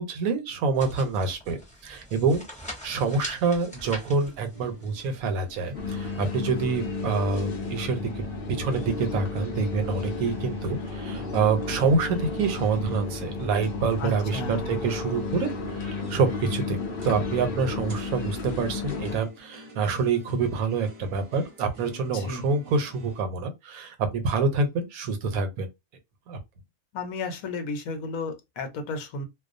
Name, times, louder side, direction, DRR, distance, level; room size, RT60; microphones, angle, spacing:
voice 1, 0.0-2.4 2.8-8.2 8.5-16.8 17.0-25.7 26.3-26.4, right 4 dB, 80° right, 1.1 m, -27 dB
sound 1, 0.7-6.5, equal, 5° left, 0.6 m, -43 dB
sound 2, 4.5-23.2, equal, 35° right, 0.8 m, -49 dB
sound 3, 5.7-19.2, left 3 dB, 55° left, 0.7 m, -33 dB
voice 2, 14.0-14.7 22.1-22.4 26.9-29.2, left 3 dB, 75° left, 1.1 m, -33 dB
2.3 x 2.3 x 2.5 m
omnidirectional pair, 1.5 m